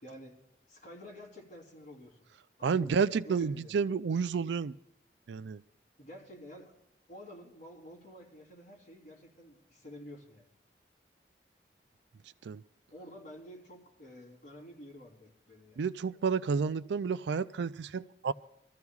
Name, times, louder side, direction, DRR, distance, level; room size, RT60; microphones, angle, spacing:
voice 1, 0.0-0.4 0.7-2.2 2.6-3.7 6.0-6.7 7.1-10.5 12.9-15.8, equal, 45° left, 3.4 m, -50 dB
voice 2, 2.6-4.7 5.3-5.6 12.4-12.6 15.8-18.3, right 5 dB, 80° right, 0.4 m, -30 dB
25.0 x 14.0 x 2.4 m
head